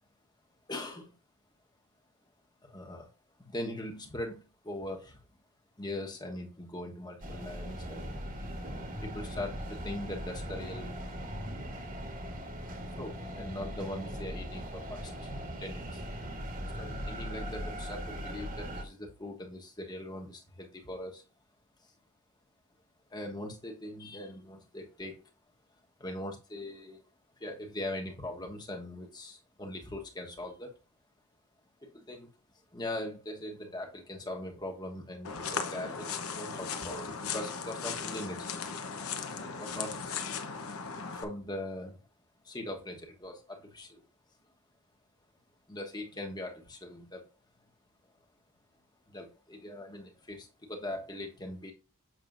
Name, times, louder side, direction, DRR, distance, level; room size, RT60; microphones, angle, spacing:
voice 1, 0.7-1.1 2.6-3.1 3.4-5.2 5.8-8.2 9.0-11.0 12.9-15.3 15.6-16.1 16.6-21.2 23.1-25.2 26.0-27.0 27.4-30.7 31.8-32.3 32.7-38.5 39.3-40.0 41.1-42.0 42.4-44.0 45.7-47.3 49.1-51.7, left 1 dB, 20° left, 2 dB, 1.3 m, -41 dB
sound 1, 7.2-18.8, equal, 40° right, 1.4 m, -39 dB
sound 2, 35.2-41.2, left 5 dB, 75° left, 1.0 m, -37 dB
7.6 x 6.0 x 2.6 m, 0.34 s
head